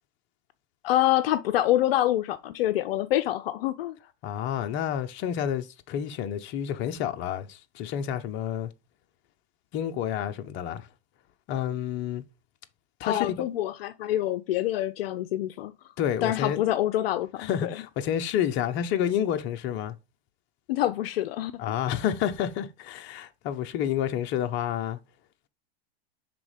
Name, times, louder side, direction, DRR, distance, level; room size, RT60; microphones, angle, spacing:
voice 1, 0.8-4.0 13.0-15.7 16.2-17.7 20.7-21.6, left 13 dB, 65° left, 0.6 m, -26 dB
voice 2, 4.2-8.7 9.7-10.9 11.5-12.2 13.0-13.4 16.0-16.6 17.4-20.0 21.6-25.0, left 9 dB, 35° left, 0.9 m, -29 dB
5.9 x 3.7 x 5.0 m
supercardioid pair, 135°, 32 cm